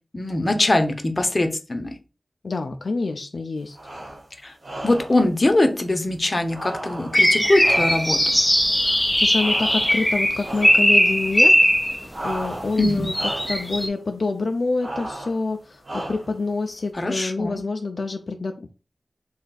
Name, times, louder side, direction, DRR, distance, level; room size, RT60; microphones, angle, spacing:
voice 1, 0.1-1.9 4.4-4.5 4.8-8.2 12.8-13.1 17.0-17.6, left 2 dB, 45° left, 6 dB, 0.7 m, -22 dB
voice 2, 2.4-3.8 8.7-11.6 11.9-18.7, left 3 dB, 80° left, 4 dB, 0.4 m, -27 dB
sound 1, 3.7-4.3 4.6-5.2 6.5-8.3 9.4-10.1 10.4-10.9 12.1-12.8 13.1-13.7 14.8-15.4 15.8-16.4, right 1 dB, 75° right, 1.1 m, -34 dB
sound 2, 7.1-12.0 12.8-13.9, equal, ahead, 0.4 m, -19 dB
3.4 x 2.3 x 4.0 m, 0.32 s
wide cardioid pair, 50°, 0 cm